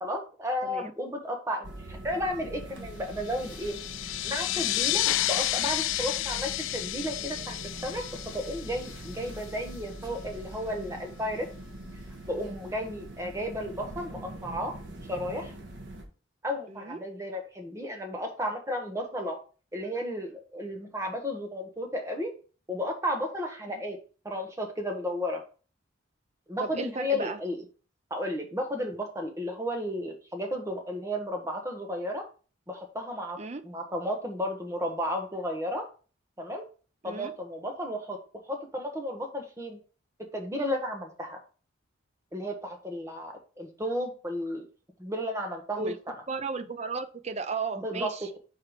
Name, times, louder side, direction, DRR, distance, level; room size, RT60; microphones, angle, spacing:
voice 1, 0.0-7.6 7.8-11.5 12.3-14.8 15.1-15.5 16.4-19.4 19.7-22.3 22.7-24.0 24.2-25.4 26.5-27.6 28.1-32.3 32.7-33.4 33.6-35.9 36.4-36.6 37.0-38.2 38.5-39.8 40.3-41.4 42.3-44.6 45.0-45.9 47.8-48.1, equal, 15° right, 3 dB, 1.2 m, -33 dB
sound 1, 1.6-16.0, right 1 dB, 60° right, 1.2 m, -43 dB
sound 2, 3.2-9.5, left 14 dB, 70° left, 0.3 m, -31 dB
voice 2, 16.7-17.0 23.7-23.8 26.6-27.4 33.4-33.6 37.0-37.3 45.8-46.0 46.3-48.3, right 4 dB, 35° right, 10 dB, 0.5 m, -34 dB
4.9 x 4.7 x 5.0 m, 0.37 s
head